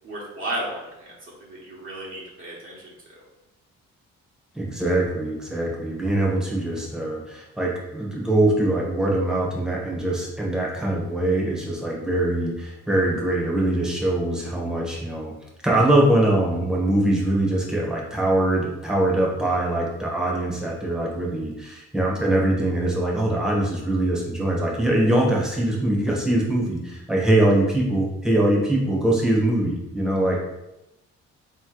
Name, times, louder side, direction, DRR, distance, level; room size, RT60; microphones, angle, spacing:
voice 1, 0.0-2.9, right 1 dB, 45° right, -5 dB, 1.4 m, -34 dB
voice 2, 4.5-15.3 15.6-30.4, right 1 dB, ahead, -3 dB, 1.3 m, -22 dB
3.8 x 3.1 x 3.9 m, 0.93 s
cardioid pair, 90°, 30 cm